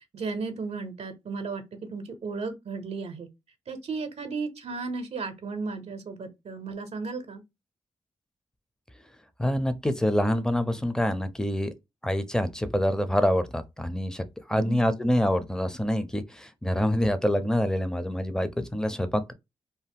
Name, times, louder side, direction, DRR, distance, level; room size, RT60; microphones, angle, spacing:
voice 1, 0.1-3.3 3.7-7.4 14.5-14.8, right 4 dB, 60° right, 0.7 m, -34 dB
voice 2, 9.4-11.7 12.0-14.2 14.5-19.3, equal, 5° left, 0.6 m, -26 dB
2.7 x 2.0 x 3.5 m
supercardioid pair, 45°, 12 cm